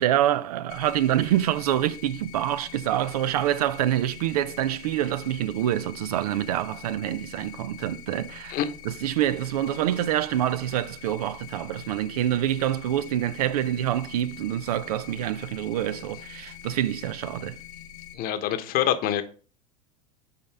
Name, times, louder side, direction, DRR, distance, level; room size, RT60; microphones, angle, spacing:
voice 1, 0.0-8.5 8.8-17.6, right 12 dB, 85° right, 0.4 m, -26 dB
sound 1, 0.7-18.1, left 10 dB, 75° left, 1.1 m, -44 dB
voice 2, 18.1-19.2, left 11 dB, 50° left, 1.0 m, -25 dB
8.8 x 4.2 x 3.4 m
hypercardioid pair, 95°, 19 cm